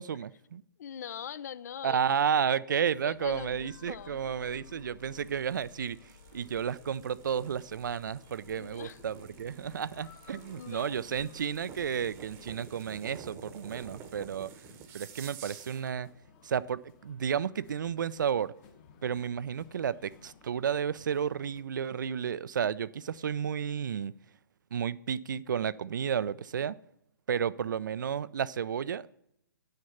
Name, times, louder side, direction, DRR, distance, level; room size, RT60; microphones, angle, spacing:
voice 1, 0.0-0.6 1.8-6.0 6.3-14.5 14.9-16.1 16.4-18.5 19.0-24.1 24.7-26.8 27.3-29.1, right 7 dB, 60° right, 19 dB, 0.4 m, -32 dB
voice 2, 0.8-2.0 2.4-2.6 3.0-4.2 4.7-4.8 8.6-9.0 10.6-11.0 13.7-14.3, left 9 dB, 50° left, 18 dB, 0.4 m, -43 dB
sound 1, 2.8-21.6, left 6 dB, 30° left, 1.0 m, -58 dB
sound 2, 3.2-12.6, left 5 dB, 75° left, 2.2 m, -57 dB
sound 3, 5.0-16.0, right 7 dB, 20° right, 0.9 m, -51 dB
10.0 x 6.6 x 5.5 m, 0.78 s
figure-of-eight pair, 130°, 12 cm